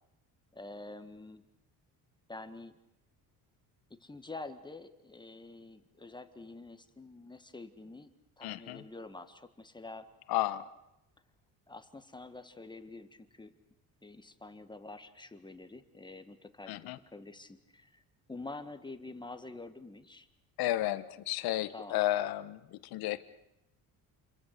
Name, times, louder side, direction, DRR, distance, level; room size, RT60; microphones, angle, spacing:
voice 1, 0.5-1.4 2.3-2.8 3.9-8.1 8.4-10.1 11.7-13.5 14.0-16.8 17.1-18.0 18.3-20.3 21.7-22.0, left 2 dB, 10° left, 9 dB, 1.5 m, -47 dB
voice 2, 8.4-8.8 10.3-10.7 16.7-17.0 20.6-23.2, left 15 dB, 75° left, 13 dB, 1.3 m, -32 dB
28.5 x 22.5 x 6.7 m, 0.84 s
cardioid pair, 120°, 37 cm